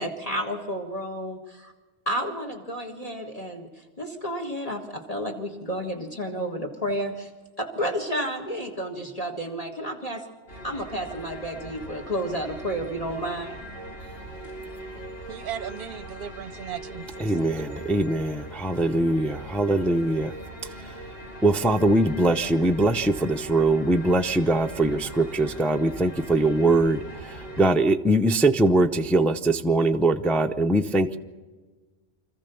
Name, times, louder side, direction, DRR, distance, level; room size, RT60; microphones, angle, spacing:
voice 1, 0.0-1.7 2.1-7.3 7.6-10.2 10.6-13.6, equal, 35° left, 1.8 m, -31 dB
sound 1, 10.5-27.7, right 1 dB, 60° left, 2.6 m, -41 dB
voice 2, 15.3-17.0 17.4-17.8, right 9 dB, 55° right, 0.9 m, -37 dB
voice 3, 17.2-20.3 21.4-27.0 27.6-31.2, right 2 dB, ahead, 0.5 m, -22 dB
26.0 x 14.5 x 7.0 m
omnidirectional pair, 1.2 m